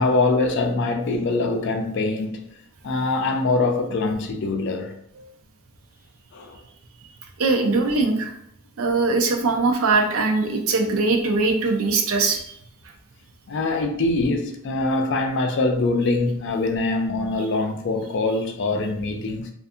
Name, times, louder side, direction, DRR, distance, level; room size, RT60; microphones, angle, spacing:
voice 1, 0.0-2.4 2.8-4.9 6.3-6.6 7.6-7.7 13.5-19.5, left 3 dB, 55° left, 0.4 m, -23 dB
voice 2, 7.4-8.3 8.8-12.6, right 3 dB, 70° right, 0.4 m, -21 dB
2.6 x 2.5 x 2.4 m
head